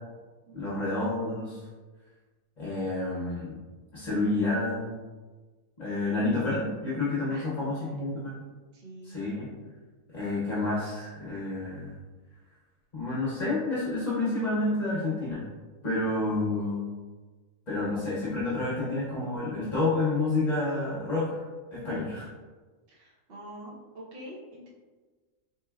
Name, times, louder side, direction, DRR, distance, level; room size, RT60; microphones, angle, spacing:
voice 1, 0.5-1.6 2.6-3.6 3.9-5.0 5.8-8.3 9.0-9.5 10.1-11.9 12.9-15.4 15.8-16.8 17.7-21.4 21.7-22.3, left 2 dB, 40° left, -8 dB, 0.8 m, -29 dB
voice 2, 7.7-8.2 8.7-9.3 21.9-22.2 22.9-24.7, right 1 dB, 50° right, -3 dB, 0.8 m, -46 dB
4.3 x 3.1 x 2.2 m, 1.3 s
omnidirectional pair, 1.5 m